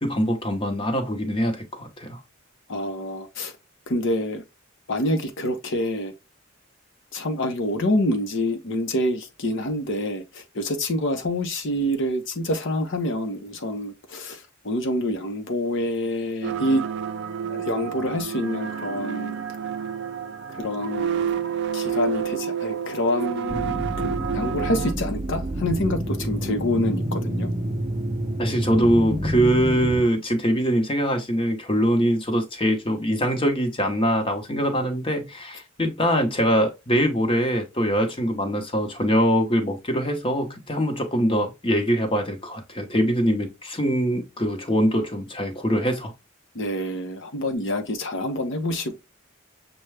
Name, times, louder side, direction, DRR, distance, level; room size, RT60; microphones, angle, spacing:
voice 1, 0.0-2.2 28.4-46.1, equal, 25° left, 0.9 m, -23 dB
voice 2, 2.7-3.5 3.9-4.4 4.9-6.1 7.1-16.9 17.5-19.4 20.5-21.4 21.7-27.5 46.5-49.0, left 1 dB, 65° left, 0.8 m, -27 dB
sound 1, 16.4-24.9, right 8 dB, 60° right, 0.4 m, -29 dB
sound 2, 23.5-30.0, equal, 20° right, 0.7 m, -28 dB
6.6 x 2.3 x 3.3 m
head